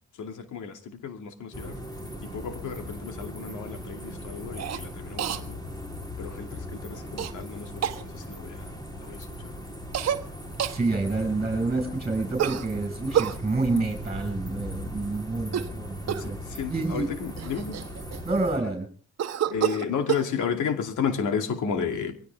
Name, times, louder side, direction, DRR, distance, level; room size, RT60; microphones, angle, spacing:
voice 1, 0.2-1.7 2.2-5.6 6.2-8.7 9.0-9.5 16.2-17.8 19.5-22.2, left 6 dB, 80° left, 2.6 m, -32 dB
sound 1, 1.5-18.6, equal, 15° left, 3.6 m, -39 dB
Cough, 4.6-4.8 5.2-5.4 7.2-7.3 7.8-8.0 9.9-10.2 10.6-10.8 12.4-13.4 15.4-15.8 16.1-16.4 17.0-17.1 17.4-18.4 19.2-20.3, right 10 dB, 60° right, 1.2 m, -28 dB
voice 2, 10.7-16.4 16.7-17.1 18.3-18.9, right 3 dB, 20° right, 5.5 m, -28 dB
22.5 x 17.0 x 3.5 m
cardioid pair, 90°, 30 cm